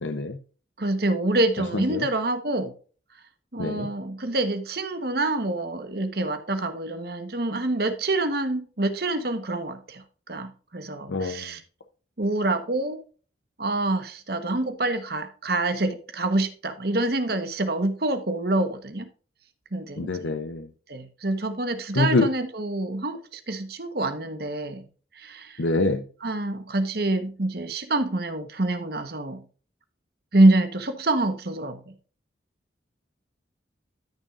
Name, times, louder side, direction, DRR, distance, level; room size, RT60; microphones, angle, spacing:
voice 1, 0.0-0.4 1.9-2.0 3.6-3.9 11.1-11.4 20.0-20.7 22.0-22.3 25.6-26.0, left 3 dB, 85° left, 0.8 m, -25 dB
voice 2, 0.8-2.7 3.5-11.6 12.2-13.0 13.6-19.1 19.7-20.3 20.9-24.9 25.1-25.6 26.2-29.4 30.3-31.8, right 2 dB, 55° right, 1.3 m, -26 dB
13.0 x 6.2 x 2.6 m
head